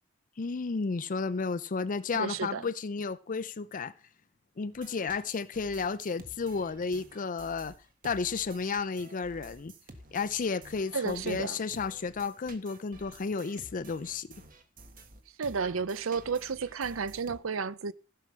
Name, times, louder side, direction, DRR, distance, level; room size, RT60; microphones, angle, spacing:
voice 1, 0.4-3.9 4.6-7.7 8.0-9.7 10.1-14.3, left 4 dB, 40° left, 0.5 m, -32 dB
voice 2, 2.1-2.7 10.9-11.6 15.4-17.9, right 5 dB, 80° right, 0.6 m, -32 dB
sound 1, 4.7-17.4, right 2 dB, 45° right, 1.5 m, -52 dB
15.0 x 5.8 x 6.1 m
head